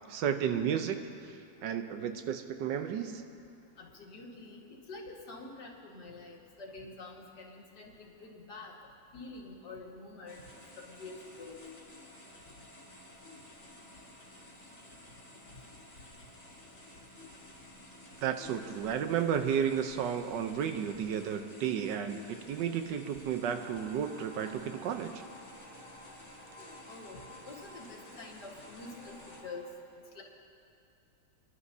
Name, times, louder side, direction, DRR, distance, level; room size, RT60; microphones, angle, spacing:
voice 1, 0.1-1.0 1.6-3.2 18.2-25.2, right 8 dB, 80° right, 7 dB, 1.4 m, -32 dB
voice 2, 3.8-8.8 9.1-10.5 10.8-11.6 26.9-27.2 27.5-29.7 30.2-30.3, left 3 dB, 65° left, -1 dB, 2.2 m, -47 dB
sound 1, 10.3-29.4, left 1 dB, 45° left, 2.7 m, -53 dB
sound 2, 23.4-29.7, equal, 40° right, 3.4 m, -53 dB
29.0 x 11.5 x 2.8 m, 2.5 s
omnidirectional pair, 1.9 m